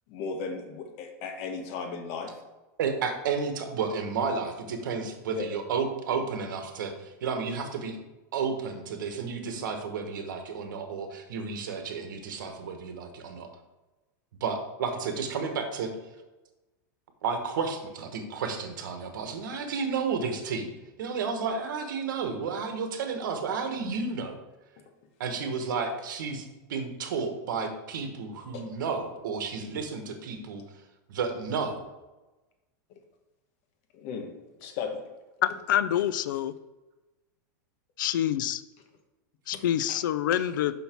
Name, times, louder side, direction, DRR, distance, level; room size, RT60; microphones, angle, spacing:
voice 1, 0.1-2.4 5.2-5.5 28.5-28.6 33.9-35.0 35.9-36.0 39.5-39.6 39.9-40.0, left 5 dB, 45° left, 4 dB, 1.1 m, -36 dB
voice 2, 2.8-8.0 8.3-13.5 14.4-15.9 17.2-20.7 21.0-24.4 25.2-30.6 31.1-31.8, right 5 dB, 85° right, 6 dB, 1.2 m, -32 dB
voice 3, 35.4-36.5 38.0-38.6 39.5-40.7, left 11 dB, 85° left, 15 dB, 0.4 m, -26 dB
5.7 x 5.6 x 4.4 m, 1.1 s
supercardioid pair, 160°, 10 cm